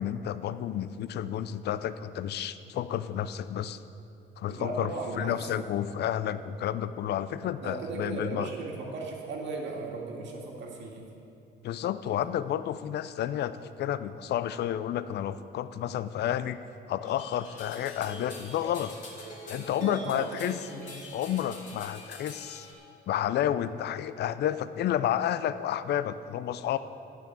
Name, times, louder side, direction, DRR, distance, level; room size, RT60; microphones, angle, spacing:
voice 1, 0.0-3.8 4.4-8.5 11.6-16.6 16.9-18.9 19.5-20.6 21.1-22.7 23.1-26.8, left 10 dB, 55° left, 13 dB, 0.4 m, -31 dB
voice 2, 4.5-5.6 7.6-11.1 19.7-20.8, right 3 dB, 60° right, -1 dB, 1.9 m, -37 dB
sound 1, 17.0-22.7, left 1 dB, 40° left, 2.2 m, -44 dB
9.6 x 6.1 x 8.6 m, 2.6 s
cardioid pair, 115°, 20 cm